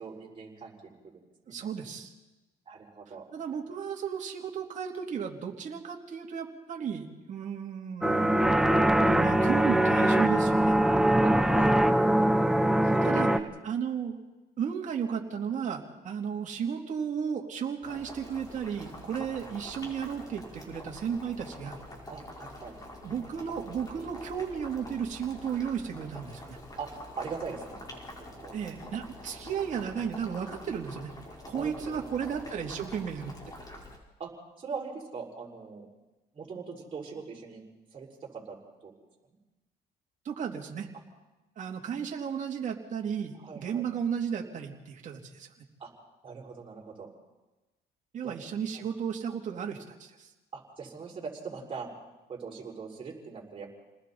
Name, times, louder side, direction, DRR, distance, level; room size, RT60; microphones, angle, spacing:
voice 1, 0.0-1.7 2.7-3.2 11.2-12.3 12.9-13.5 22.1-22.7 26.8-26.9 27.2-27.8 28.4-28.5 31.5-32.0 34.2-34.3 34.6-35.9 36.3-37.6 37.9-38.6 38.8-38.9 43.4-43.8 45.8-45.9 46.2-47.1 48.2-48.4 48.7-48.8 50.5-51.9 52.3-53.7, right 5 dB, 30° right, -4 dB, 6.2 m, -41 dB
voice 2, 1.5-2.1 3.3-10.7 13.0-13.3 13.6-14.2 14.6-21.8 23.0-26.6 28.5-31.1 31.5-33.3 40.2-40.9 41.6-45.5 48.1-50.3, right 7 dB, 45° right, 1 dB, 3.2 m, -34 dB
sound 1, 8.0-13.4, right 1 dB, 5° right, 1.1 m, -23 dB
Boiling, 17.8-34.0, left 1 dB, 25° left, 4.9 m, -46 dB
30.0 x 20.0 x 4.4 m, 1.1 s
cardioid pair, 110°, 17 cm